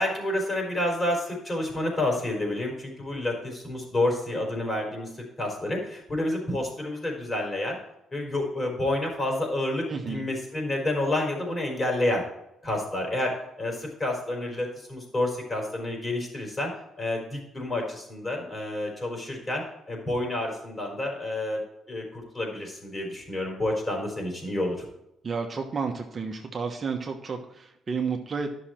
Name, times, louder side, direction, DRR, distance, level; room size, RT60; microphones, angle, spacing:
voice 1, 0.0-5.1 5.4-7.8 8.1-12.2 12.6-16.7 17.0-19.6 19.9-24.9, left 1 dB, 25° left, 0 dB, 4.3 m, -29 dB
voice 2, 9.9-10.2 25.2-28.6, right 5 dB, 40° right, 3 dB, 1.2 m, -31 dB
11.0 x 6.3 x 4.4 m, 0.83 s
cardioid pair, 90°, 0 cm